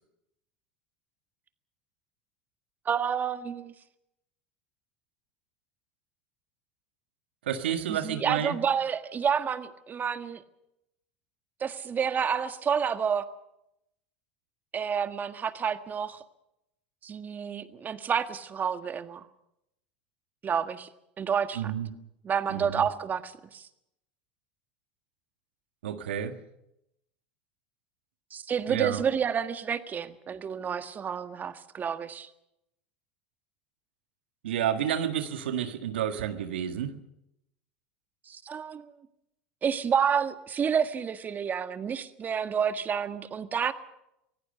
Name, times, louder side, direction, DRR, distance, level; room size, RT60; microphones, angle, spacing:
voice 1, 2.8-3.7 7.9-10.4 11.6-13.3 14.7-16.2 17.0-19.3 20.4-20.9 21.2-21.7 22.2-23.7 28.3-32.3 38.2-38.9 39.6-43.7, right 7 dB, 30° right, 10 dB, 1.6 m, -29 dB
voice 2, 7.5-8.6 21.6-21.9 22.5-22.8 25.8-26.4 28.7-29.0 34.4-36.9, right 9 dB, 80° right, 8 dB, 1.7 m, -30 dB
25.0 x 17.0 x 6.8 m, 0.84 s
hypercardioid pair, 85°, 6 cm